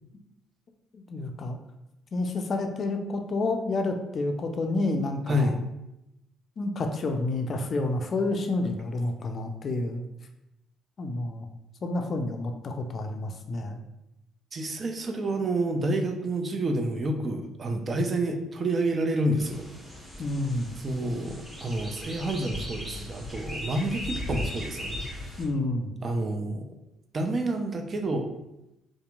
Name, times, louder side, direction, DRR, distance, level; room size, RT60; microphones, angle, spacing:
voice 1, 0.9-1.6 2.1-5.5 6.6-10.0 11.0-11.5 11.8-13.8 20.2-20.7 25.4-25.9, left 2 dB, 45° left, 5 dB, 0.3 m, -29 dB
voice 2, 14.5-19.6 20.8-25.3 26.0-26.7 27.1-28.3, right 1 dB, 40° right, 4 dB, 0.4 m, -29 dB
sound 1, 19.4-25.4, left 1 dB, 5° right, 0.9 m, -38 dB
2.8 x 2.5 x 2.3 m, 0.90 s
hypercardioid pair, 50°, 0 cm